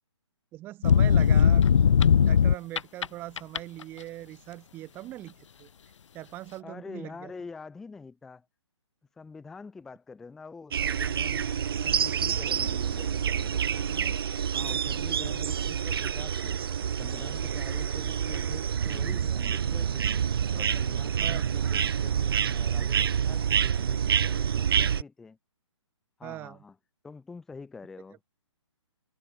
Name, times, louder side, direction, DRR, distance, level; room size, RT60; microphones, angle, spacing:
voice 1, 0.5-1.7 2.1-5.7 6.1-7.3 14.7-15.4 21.2-21.5 24.7-24.8 26.2-26.6, right 16 dB, 15° right, 2.4 m, -41 dB
sound 1, 0.8-3.1 3.4-3.8, left 7 dB, 75° left, 0.6 m, -19 dB
voice 2, 6.6-8.5 9.1-11.5 11.8-14.2 14.5-16.6 17.0-20.1 20.5-25.4 26.2-26.8 27.0-28.2, left 4 dB, ahead, 0.5 m, -46 dB
sound 2, 10.7-25.0, right 8 dB, 50° right, 0.7 m, -27 dB
hypercardioid pair, 170°, 16 cm